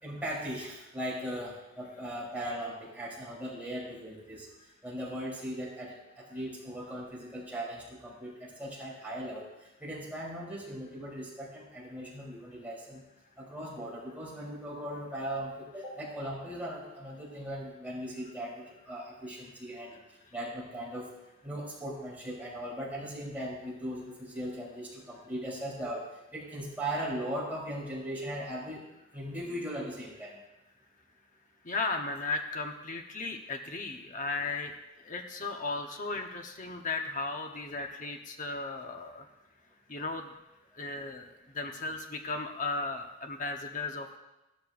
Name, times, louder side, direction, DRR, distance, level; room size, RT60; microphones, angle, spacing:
voice 1, 0.0-4.5 4.8-9.5 9.8-13.0 13.4-20.0 20.3-21.1 21.4-26.1 26.3-28.8 29.1-30.4, equal, 10° right, -6 dB, 3.6 m, -38 dB
voice 2, 31.6-34.8 35.1-39.2 39.9-40.3 40.8-41.3 41.5-44.2, left 3 dB, 40° left, 4 dB, 1.0 m, -35 dB
16.0 x 12.0 x 2.6 m, 0.99 s
head